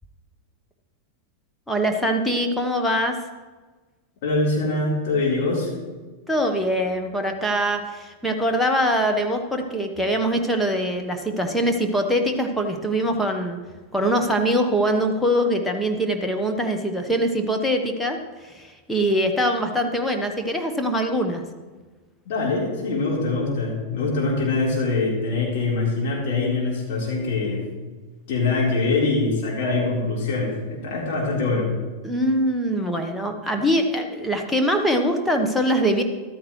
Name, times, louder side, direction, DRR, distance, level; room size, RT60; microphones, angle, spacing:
voice 1, 1.7-3.2 6.3-13.6 13.9-18.2 18.4-21.4 32.0-36.0, equal, 5° left, 3 dB, 1.2 m, -23 dB
voice 2, 4.2-5.7 22.2-27.7 28.3-31.7, left 3 dB, 50° left, -3 dB, 4.1 m, -23 dB
14.0 x 13.0 x 3.2 m, 1.3 s
figure-of-eight pair, 90°, 0 cm